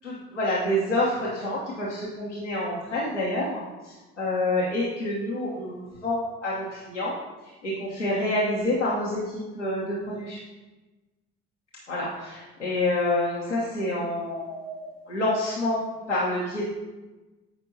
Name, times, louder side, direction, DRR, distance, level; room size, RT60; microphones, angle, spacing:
voice 1, 0.0-7.1 7.4-10.4 11.9-16.7, left 1 dB, 90° left, -7 dB, 1.1 m, -28 dB
14.0 x 5.3 x 2.7 m, 1.2 s
figure-of-eight pair, 50°, 35 cm